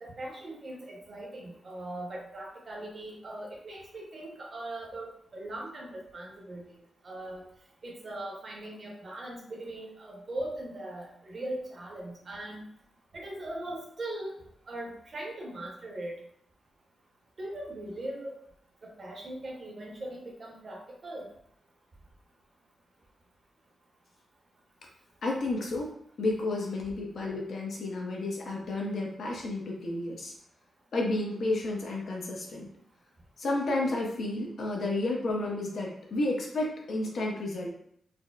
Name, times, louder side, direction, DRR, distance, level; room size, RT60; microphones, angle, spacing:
voice 1, 0.0-6.6 7.0-7.4 7.8-12.6 13.1-14.4 14.7-16.2 17.4-18.3 18.8-21.2, right 1 dB, 40° right, -1 dB, 0.8 m, -40 dB
voice 2, 25.2-25.9 26.2-30.3 30.9-32.7 33.4-37.7, left 2 dB, 60° left, -1 dB, 0.7 m, -31 dB
4.1 x 2.1 x 2.3 m, 0.69 s
wide cardioid pair, 140°, 0 cm